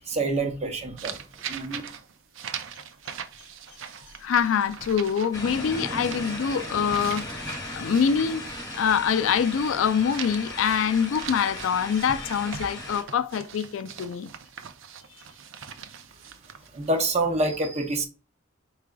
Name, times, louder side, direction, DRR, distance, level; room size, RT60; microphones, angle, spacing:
voice 1, 0.1-1.2 1.5-1.8 16.7-18.1, right 2 dB, 35° right, 0.7 m, -26 dB
sound 1, 1.0-9.7 10.0-17.0, right 7 dB, 70° right, 0.5 m, -41 dB
voice 2, 4.2-7.2 7.7-8.4 8.7-14.3, left 7 dB, 75° left, 0.4 m, -24 dB
sound 2, 5.3-13.0, left 1 dB, 20° left, 1.3 m, -37 dB
4.7 x 4.7 x 2.3 m
head